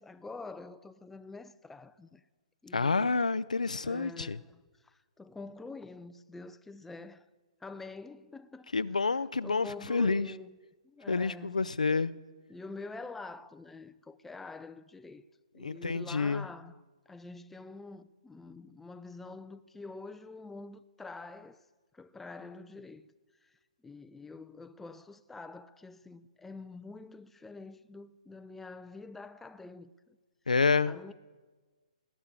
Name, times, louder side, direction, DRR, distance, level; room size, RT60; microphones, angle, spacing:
voice 1, 0.0-2.2 2.6-3.2 3.8-7.2 7.6-8.7 9.1-10.6 10.8-11.7 12.5-15.3 15.5-21.6 21.9-23.1 23.4-23.5 23.8-29.9 30.9-31.1, left 3 dB, 5° left, 0.5 m, -46 dB
voice 2, 2.7-4.4 8.7-10.3 11.1-12.1 15.6-16.5 30.5-30.9, left 4 dB, 85° left, 0.5 m, -28 dB
19.0 x 8.1 x 8.8 m
figure-of-eight pair, 130°, 4 cm